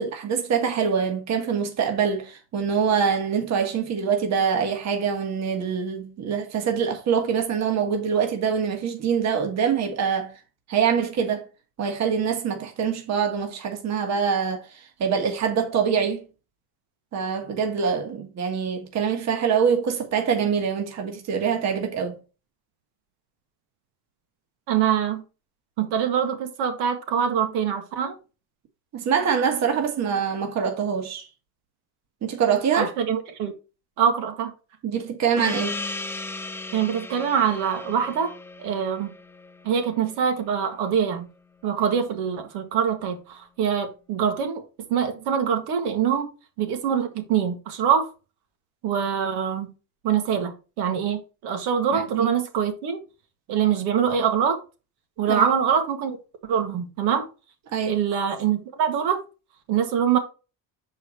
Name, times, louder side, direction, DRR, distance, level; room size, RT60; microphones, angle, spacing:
voice 1, 0.0-10.3 10.7-11.4 11.8-16.2 17.1-22.2 28.9-31.3 32.2-32.9 34.8-35.8 51.9-52.3 55.3-55.4 57.7-58.0, right 7 dB, 40° right, 1.5 m, -24 dB
voice 2, 24.7-25.2 25.8-28.1 32.7-33.5 34.0-34.5 36.7-39.1 39.6-41.3 41.6-44.6 44.9-46.3 46.6-48.1 48.8-49.7 50.0-53.0 53.5-54.6 55.2-56.2 56.5-57.3 57.9-59.2 59.7-60.2, right 8 dB, 75° right, 1.9 m, -24 dB
Gong, 35.4-40.4, left 3 dB, 5° left, 0.4 m, -36 dB
6.8 x 4.7 x 4.4 m
cardioid pair, 130°, 40 cm